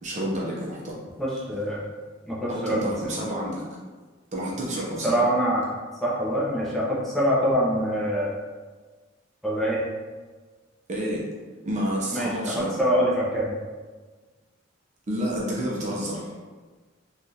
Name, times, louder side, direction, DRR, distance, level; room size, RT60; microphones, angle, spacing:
voice 1, 0.0-1.0 2.5-3.6 4.3-5.2 10.9-11.3 11.7-12.8 15.1-16.3, equal, 35° right, -4 dB, 0.5 m, -29 dB
voice 2, 1.2-1.8 2.3-2.9 5.0-5.7 6.0-8.3 9.4-9.8 12.1-13.5, equal, ahead, -8 dB, 0.6 m, -24 dB
3.4 x 2.3 x 2.6 m, 1.4 s
head